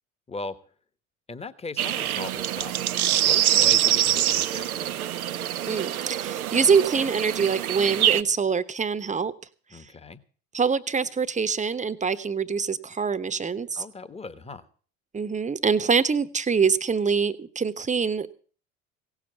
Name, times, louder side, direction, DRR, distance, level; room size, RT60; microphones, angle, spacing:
voice 1, 1.3-2.9 3.2-5.1 9.7-10.2 13.7-14.7, left 3 dB, 15° left, 13 dB, 1.2 m, -38 dB
sound 1, 1.8-8.2, right 11 dB, 85° right, 0.6 m, -24 dB
voice 2, 5.7-9.3 10.5-13.8 15.1-18.3, right 5 dB, 15° right, 13 dB, 1.0 m, -24 dB
17.0 x 7.4 x 7.9 m, 0.42 s
figure-of-eight pair, 70°, 42 cm